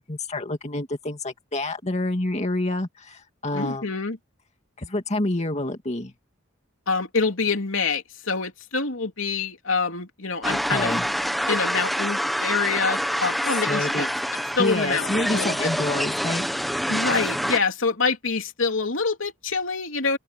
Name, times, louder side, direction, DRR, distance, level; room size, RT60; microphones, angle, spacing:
voice 1, 0.0-3.9 4.8-6.1 10.5-11.1 13.6-14.1 14.6-16.5, left 2 dB, 35° left, 2.2 m, -28 dB
voice 2, 3.5-4.2 6.9-10.9 11.5-14.1 14.5-15.7 16.9-20.2, left 4 dB, 75° left, 3.2 m, -26 dB
sound 1, 10.4-17.6, equal, ahead, 1.3 m, -26 dB
open air
head